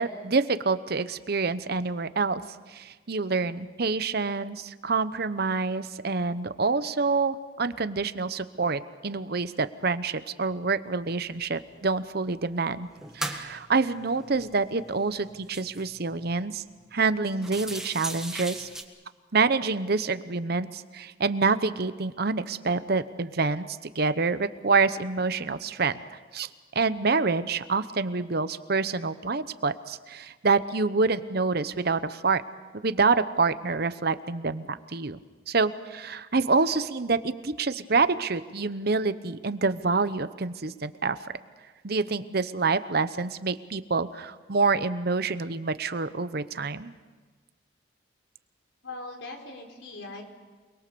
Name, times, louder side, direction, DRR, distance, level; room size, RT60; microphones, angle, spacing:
voice 1, 0.0-2.4 2.7-12.9 13.1-16.6 16.9-18.7 19.3-26.0 26.3-26.5 26.7-32.4 32.7-35.2 35.5-41.2 41.8-46.9, right 4 dB, 55° right, 12 dB, 0.9 m, -27 dB
sound 1, 11.0-11.1 11.5-12.3 12.7-16.4 16.8-16.9 17.3-18.8, right 1 dB, 5° right, 1.6 m, -39 dB
voice 2, 48.8-50.2, left 2 dB, 70° left, 2 dB, 4.4 m, -40 dB
28.5 x 21.5 x 6.9 m, 1.4 s
head